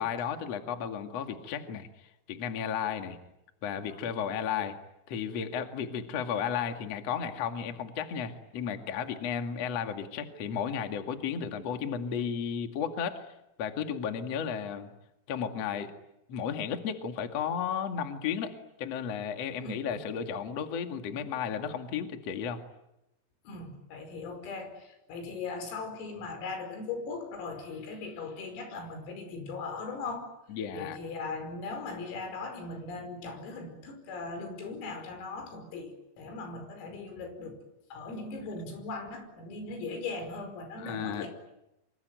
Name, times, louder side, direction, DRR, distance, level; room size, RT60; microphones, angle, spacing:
voice 1, 0.0-1.9 2.3-3.2 3.6-4.7 5.1-13.2 13.6-14.9 15.3-15.9 16.3-22.6 30.5-31.0 40.8-41.3, left 7 dB, 45° left, 6 dB, 2.2 m, -33 dB
voice 2, 19.6-20.0 23.5-30.3 30.7-37.6 37.9-41.3, left 3 dB, 90° left, 7 dB, 7.7 m, -39 dB
26.0 x 24.5 x 9.2 m, 0.88 s
omnidirectional pair, 5.9 m